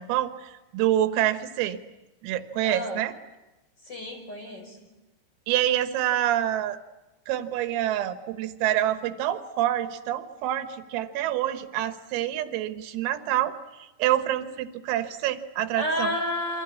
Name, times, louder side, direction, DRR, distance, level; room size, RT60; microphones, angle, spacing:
voice 1, 0.0-1.8 2.2-3.1 5.5-6.8 7.3-13.5 13.8-16.1, right 12 dB, 85° right, 9 dB, 4.0 m, -27 dB
voice 2, 2.6-3.0 3.8-4.8 15.8-16.6, equal, 20° left, 3 dB, 5.8 m, -30 dB
27.5 x 25.0 x 8.4 m, 1.0 s
omnidirectional pair, 5.9 m